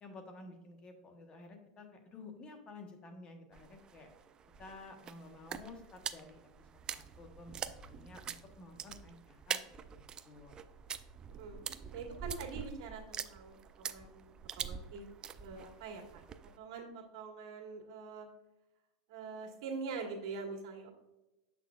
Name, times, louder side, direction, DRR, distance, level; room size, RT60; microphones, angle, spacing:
voice 1, 0.0-4.1 4.6-9.6 10.0-10.6, left 3 dB, 25° left, 5 dB, 1.2 m, -52 dB
sound 1, 3.5-16.6, right 7 dB, 25° right, 0.3 m, -45 dB
voice 2, 11.3-11.6 11.9-15.0 15.4-16.2 16.6-18.3 19.1-20.9, right 4 dB, 65° right, 1 dB, 1.7 m, -44 dB
7.3 x 6.2 x 2.4 m, 1.0 s
supercardioid pair, 140°, 3 cm